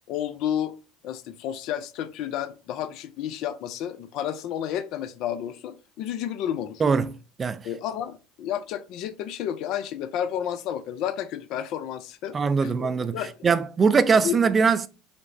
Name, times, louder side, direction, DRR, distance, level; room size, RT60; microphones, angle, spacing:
voice 1, 0.1-0.8 1.0-6.8 7.6-12.9 13.1-13.4 14.2-14.4, left 10 dB, 60° left, 0.3 m, -31 dB
voice 2, 6.8-7.1 7.4-7.7 12.3-14.9, right 5 dB, 30° right, 0.3 m, -22 dB
5.0 x 2.0 x 2.5 m
hypercardioid pair, 70°, 0 cm